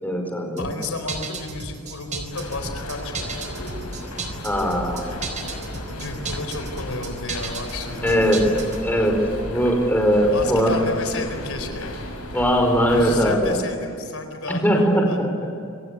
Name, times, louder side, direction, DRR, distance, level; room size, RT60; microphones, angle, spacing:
voice 1, 0.0-0.7 4.4-5.0 8.0-8.5 8.8-9.2 9.5-10.7 12.3-13.6 14.5-15.3, equal, 10° left, 2 dB, 5.0 m, -20 dB
voice 2, 0.6-3.6 6.0-8.4 8.9-9.1 10.3-11.9 12.8-15.2, left 3 dB, 70° left, 6 dB, 4.3 m, -32 dB
sound 1, 0.6-8.8, right 3 dB, 35° right, 4.5 m, -34 dB
sound 2, 2.3-13.3, left 1 dB, 90° left, 6.9 m, -34 dB
27.0 x 25.5 x 8.5 m, 2.4 s
head